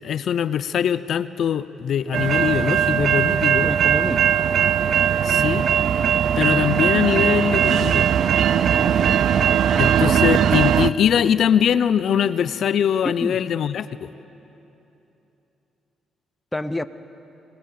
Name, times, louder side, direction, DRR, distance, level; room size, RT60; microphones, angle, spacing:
voice 1, 0.0-3.7 5.2-5.7 6.4-8.1 9.8-14.1, left 8 dB, 65° left, 15 dB, 0.6 m, -22 dB
sound 1, 2.1-10.9, right 8 dB, 65° right, 0.6 m, -19 dB
voice 2, 3.6-4.3 8.8-9.3 10.0-10.2 13.0-13.4 16.5-16.8, left 1 dB, 10° left, 11 dB, 0.9 m, -29 dB
27.0 x 20.0 x 8.4 m, 3.0 s
cardioid pair, 90°, 0 cm